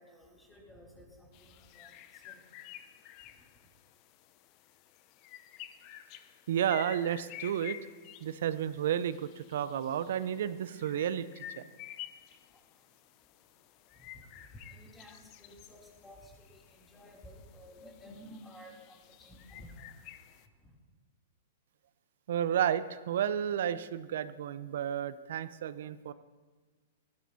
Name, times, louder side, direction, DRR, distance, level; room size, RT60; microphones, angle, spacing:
voice 1, 0.0-3.7 12.1-20.7, equal, 10° left, -2 dB, 3.1 m, -55 dB
sound 1, 1.3-20.5, left 13 dB, 40° left, 0.7 m, -51 dB
voice 2, 6.5-7.8 8.2-11.6 22.3-26.1, right 9 dB, 70° right, 15 dB, 0.6 m, -32 dB
18.5 x 15.0 x 2.8 m, 1.4 s
hypercardioid pair, 125°, 0 cm